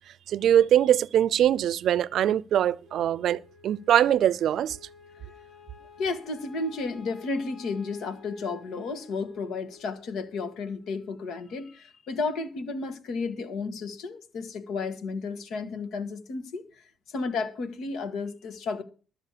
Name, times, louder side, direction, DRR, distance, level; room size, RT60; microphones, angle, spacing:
voice 1, 0.3-4.8, right 10 dB, 70° right, 0.5 m, -22 dB
Wind instrument woodwind instrument, 2.8-11.3, left 6 dB, 60° left, 5.4 m, -53 dB
voice 2, 6.0-16.6 17.1-18.8, left 4 dB, 75° left, 1.7 m, -32 dB
13.0 x 7.5 x 6.7 m
cardioid pair, 90°, 0 cm